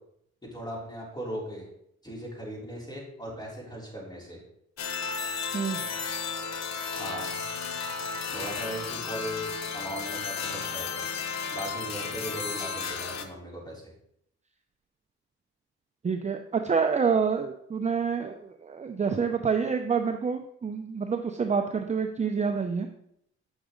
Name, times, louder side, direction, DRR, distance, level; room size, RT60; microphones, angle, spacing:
voice 1, 0.5-1.6 2.0-4.4 7.0-7.4 8.3-11.0 11.5-13.8, equal, 15° left, -4 dB, 3.6 m, -38 dB
sound 1, 4.8-13.3, left 5 dB, 60° left, 1.0 m, -33 dB
voice 2, 16.0-22.9, right 5 dB, 25° right, 5 dB, 0.6 m, -27 dB
8.1 x 6.1 x 3.8 m, 0.72 s
cardioid pair, 90°, 30 cm